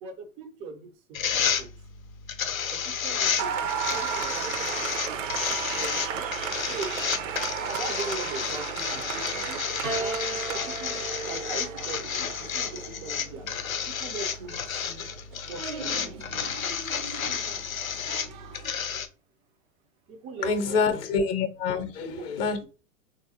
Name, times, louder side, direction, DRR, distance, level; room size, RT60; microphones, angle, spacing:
voice 1, 0.0-1.7 2.7-6.2 6.7-6.9 7.6-9.6 10.0-13.5 13.9-15.1 15.4-16.5 17.2-17.3 20.1-20.5 20.9-21.1 21.7-22.2, right 4 dB, 15° right, 6 dB, 0.3 m, -40 dB
sound 1, 1.1-19.1, left 7 dB, 90° left, 0.5 m, -31 dB
Applause, 3.4-18.7, right 7 dB, 65° right, 0.6 m, -35 dB
Piano, 9.8-14.3 15.3-16.1, right 4 dB, 85° right, 1.1 m, -38 dB
voice 2, 20.4-22.7, left 5 dB, 45° left, 6 dB, 0.6 m, -26 dB
3.4 x 2.4 x 2.7 m, 0.34 s
figure-of-eight pair, 100°, 40 cm